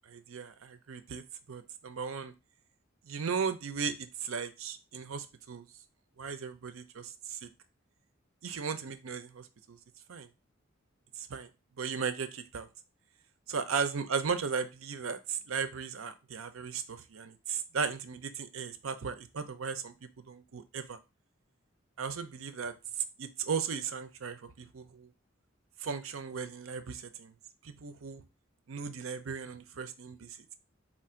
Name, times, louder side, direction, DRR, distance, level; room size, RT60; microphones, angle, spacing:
voice 1, 0.1-2.3 3.1-5.7 6.2-7.5 8.4-9.8 10.1-10.3 11.2-11.5 11.8-12.7 13.5-21.0 22.0-22.7 23.2-25.1 25.8-27.3 27.6-28.2 28.7-30.3, right 6 dB, 85° right, 10 dB, 0.6 m, -36 dB
4.3 x 2.5 x 4.3 m, 0.27 s
head